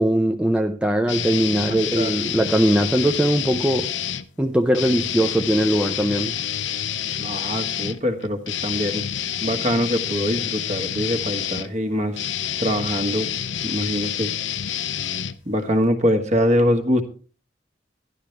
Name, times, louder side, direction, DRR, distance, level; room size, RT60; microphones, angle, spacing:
voice 1, 0.0-3.9 4.4-6.3, right 1 dB, 5° right, 0.5 m, -20 dB
sound 1, 1.1-4.2 4.7-15.9, left 9 dB, 90° left, 0.6 m, -28 dB
voice 2, 1.7-2.1 7.2-9.1 9.4-12.2 12.6-13.3 13.6-14.3 15.4-17.0, equal, 40° right, 1.4 m, -23 dB
12.0 x 11.5 x 3.3 m
head